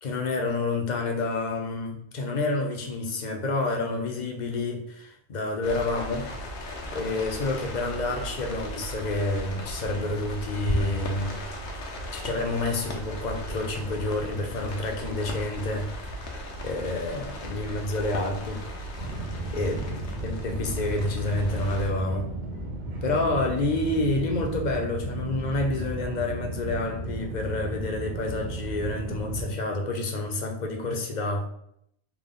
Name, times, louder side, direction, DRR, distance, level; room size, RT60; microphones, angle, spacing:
voice 1, 0.0-6.3 6.9-11.3 12.1-16.3 16.6-18.6 19.5-19.9 20.2-22.3 23.0-31.5, left 2 dB, 50° left, 2 dB, 0.7 m, -29 dB
sound 1, 5.6-21.9, equal, 85° left, 1.0 m, -36 dB
sound 2, 19.0-29.5, right 1 dB, 50° right, 0.7 m, -34 dB
3.5 x 2.1 x 3.7 m, 0.72 s
omnidirectional pair, 1.1 m